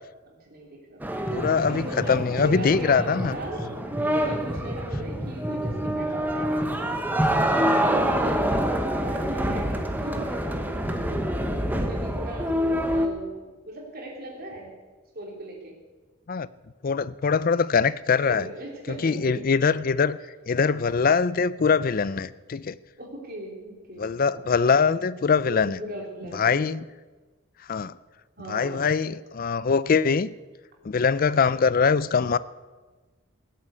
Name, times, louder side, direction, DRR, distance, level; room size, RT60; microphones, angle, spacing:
voice 1, 0.3-1.0 1.6-7.8 8.1-8.6 9.0-12.5 12.9-14.8 15.1-15.7 18.2-19.4 23.0-24.6 25.4-26.7 28.4-28.9, right 1 dB, 45° right, -1 dB, 3.5 m, -38 dB
sound 1, 1.0-13.1, equal, 10° right, 1.0 m, -26 dB
voice 2, 1.3-3.4 16.3-16.5 16.8-18.5 18.9-20.2 20.5-22.7 24.0-25.8 26.3-26.8 27.7-27.9 28.5-30.3 30.8-32.4, left 5 dB, 40° left, 17 dB, 0.4 m, -23 dB
17.0 x 8.3 x 8.2 m, 1.3 s
head